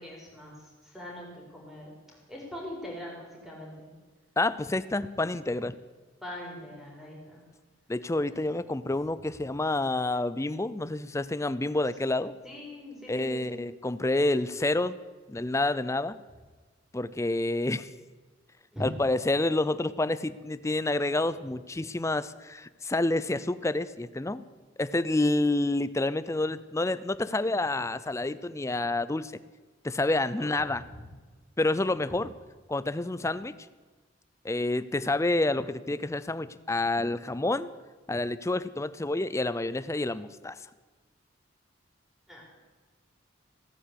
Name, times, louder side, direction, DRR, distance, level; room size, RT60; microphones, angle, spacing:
voice 1, 0.0-1.9 2.3-3.9 6.2-7.4 8.3-8.6 12.4-13.5 18.7-18.9 30.4-30.5 30.9-31.0 42.3-42.4, left 1 dB, ahead, -2 dB, 4.7 m, -42 dB
voice 2, 4.4-5.8 7.9-12.3 13.1-15.0 15.3-16.2 16.9-17.9 18.8-24.5 24.8-29.3 29.8-30.8 31.6-32.3 32.7-33.5 34.4-37.7 38.1-40.6, left 2 dB, 15° left, 16 dB, 0.5 m, -28 dB
16.5 x 9.4 x 8.4 m, 1.3 s
head